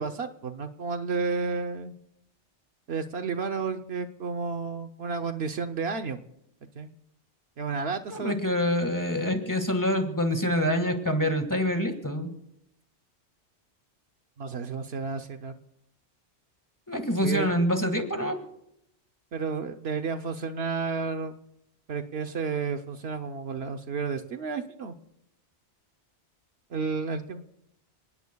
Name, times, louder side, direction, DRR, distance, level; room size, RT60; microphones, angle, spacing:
voice 1, 0.0-1.9 2.9-6.2 6.8-6.9 7.6-8.3 14.4-15.6 17.2-17.5 19.3-21.4 21.9-25.0 26.7-27.4, right 5 dB, 65° right, 7 dB, 1.0 m, -31 dB
voice 2, 8.1-12.3 16.9-18.4, equal, 15° left, 6 dB, 1.7 m, -26 dB
30.0 x 19.0 x 2.3 m, 0.78 s
omnidirectional pair, 1.2 m